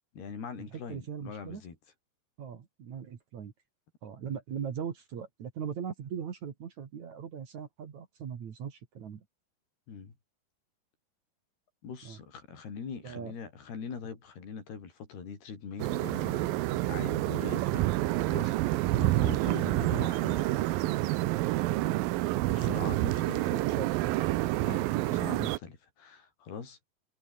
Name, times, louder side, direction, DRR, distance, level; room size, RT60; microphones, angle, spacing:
voice 1, 0.2-1.8 9.9-10.2 11.8-17.9 18.3-20.6 22.5-23.6 24.6-26.8, left 6 dB, 85° left, 7.0 m, -42 dB
voice 2, 0.7-1.6 2.4-3.5 4.0-9.2 12.0-12.2 13.0-13.3 19.5-19.8 22.4-22.7 23.5-24.2 25.0-25.2, right 7 dB, 50° right, 3.2 m, -40 dB
sound 1, 15.8-25.6, right 17 dB, 80° right, 2.4 m, -28 dB
omnidirectional pair, 4.5 m